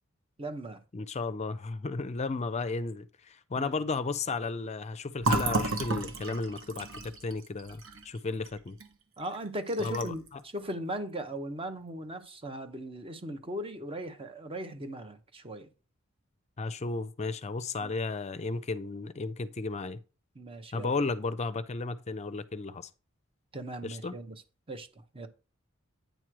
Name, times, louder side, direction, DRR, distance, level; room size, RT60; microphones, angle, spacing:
voice 1, 0.4-0.8 3.6-3.7 9.2-10.2 10.5-15.7 17.8-17.9 20.4-20.9 23.5-24.4 24.7-24.9 25.1-25.3, right 1 dB, 25° right, 0.8 m, -38 dB
voice 2, 0.9-6.9 7.2-8.8 9.8-10.4 16.6-20.0 20.7-22.9 23.8-24.2, left 3 dB, 35° left, 0.5 m, -34 dB
Fill (with liquid), 5.2-8.9 9.2-9.4 9.7-10.3, right 3 dB, 70° right, 1.1 m, -32 dB
9.1 x 3.1 x 6.1 m
head